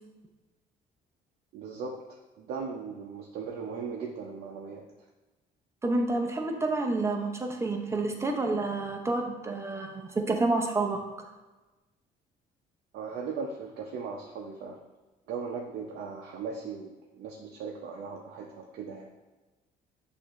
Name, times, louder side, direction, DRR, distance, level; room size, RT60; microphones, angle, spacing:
voice 1, 1.5-4.8 12.9-14.8 15.3-19.1, right 5 dB, 65° right, 0 dB, 0.6 m, -38 dB
voice 2, 5.8-11.0, right 2 dB, 15° right, 2 dB, 0.6 m, -29 dB
6.5 x 2.6 x 3.0 m, 1.1 s
cardioid pair, 110°, 17 cm